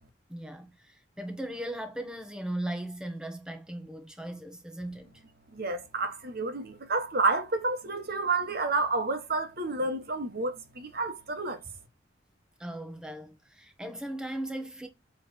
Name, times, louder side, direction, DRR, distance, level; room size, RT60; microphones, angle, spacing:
voice 1, 0.3-5.2 9.8-9.9 12.6-14.9, right 1 dB, 5° right, 1.6 m, -38 dB
voice 2, 5.5-11.6, right 3 dB, 50° right, 1.6 m, -30 dB
8.1 x 3.7 x 6.4 m
head